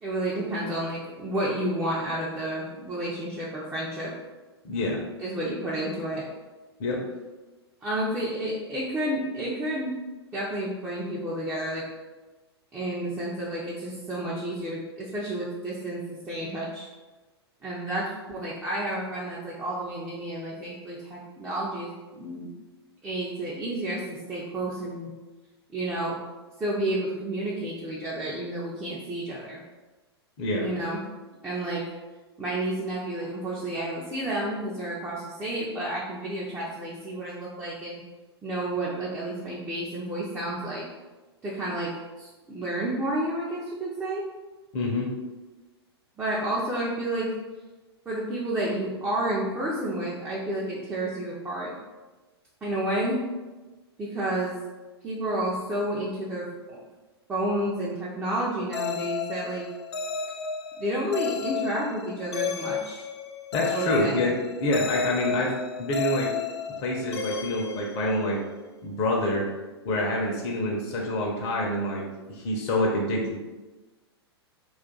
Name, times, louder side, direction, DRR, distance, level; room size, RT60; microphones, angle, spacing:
voice 1, 0.0-4.1 5.2-6.2 7.8-10.0 10.3-11.8 12.7-16.9 17.6-22.5 23.0-25.1 25.7-26.2 26.6-29.6 30.6-31.0 31.4-31.8 32.4-38.0 38.4-40.8 41.4-41.9 42.2-44.2 46.2-47.3 48.1-51.7 52.6-53.2 54.0-54.6 55.0-56.8 57.3-59.7 60.8-63.0 63.7-64.2, right 1 dB, 15° right, -7 dB, 0.5 m, -30 dB
voice 2, 4.6-5.0 6.8-7.0 30.4-30.7 44.7-45.1 63.5-65.5 65.8-66.3 66.8-68.4 68.8-69.5 69.8-73.4, left 1 dB, 40° left, -2 dB, 0.7 m, -27 dB
sound 1, 58.7-68.5, left 6 dB, 75° left, 0.4 m, -33 dB
2.5 x 2.4 x 3.7 m, 1.2 s
figure-of-eight pair, 105°, 14 cm